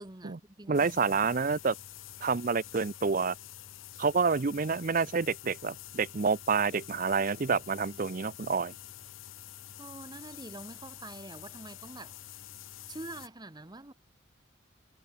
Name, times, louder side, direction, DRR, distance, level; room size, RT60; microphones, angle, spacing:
voice 1, 0.0-1.4 9.8-12.4 12.9-13.9, right 2 dB, 20° right, 1.2 m, -46 dB
sound 1, 0.7-13.3, left 12 dB, 80° left, 0.9 m, -48 dB
voice 2, 0.7-1.7 2.2-3.3 4.0-8.7, right 5 dB, 45° right, 0.6 m, -28 dB
head